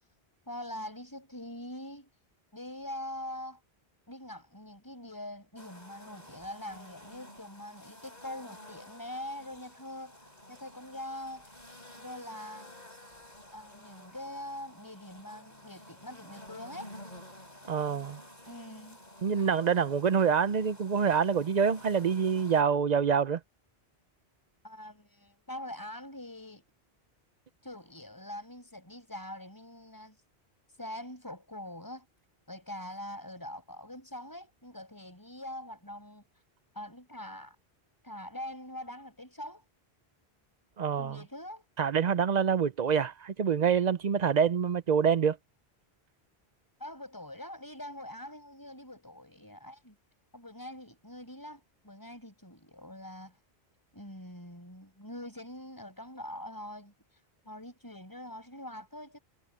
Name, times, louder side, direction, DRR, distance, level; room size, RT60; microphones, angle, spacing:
voice 1, 0.5-2.1 2.5-3.6 4.1-10.2 10.5-11.5 12.0-12.8 13.5-16.9 18.5-19.0 24.6-26.7 27.6-30.2 30.8-32.1 32.5-36.2 36.7-37.6 38.0-39.6 41.0-41.7 46.8-50.0 50.3-53.4 53.9-56.9 57.4-59.2, left 1 dB, 20° left, 7.6 m, -43 dB
sound 1, 5.6-22.6, left 1 dB, 40° left, 6.5 m, -51 dB
voice 2, 17.7-18.2 19.2-23.4 40.8-41.2 41.8-45.4, right 7 dB, 50° right, 0.7 m, -26 dB
omnidirectional pair, 1.1 m